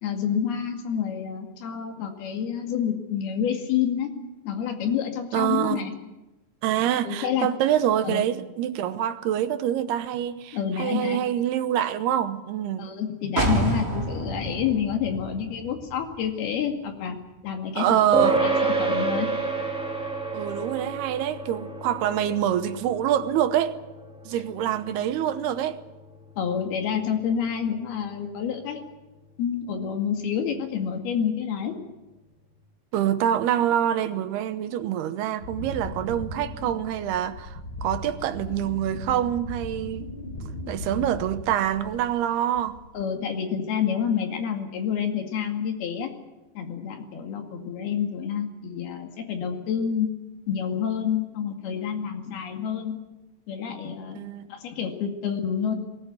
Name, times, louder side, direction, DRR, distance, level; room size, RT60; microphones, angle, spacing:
voice 1, 0.0-4.1 4.5-5.9 7.0-7.5 8.0-8.3 10.5-11.2 12.8-17.2 17.4-19.3 24.3-24.4 26.4-28.8 29.4-31.8 42.9-46.1 46.6-50.1 50.5-53.0 53.5-54.2 54.5-55.7, left 8 dB, 75° left, 4.2 m, -28 dB
voice 2, 5.3-5.9 6.6-12.9 17.8-18.4 20.3-23.8 24.3-25.8 32.9-40.1 40.7-42.8 54.1-54.5, right 11 dB, 80° right, 3.0 m, -25 dB
sound 1, 13.4-17.1 17.5-17.6, right 2 dB, 20° right, 2.3 m, -29 dB
sound 2, 18.1-27.8, right 3 dB, ahead, 2.6 m, -30 dB
Wind, 35.4-42.2 42.5-43.0, left 2 dB, 35° left, 3.2 m, -38 dB
20.0 x 19.0 x 9.5 m
omnidirectional pair, 4.6 m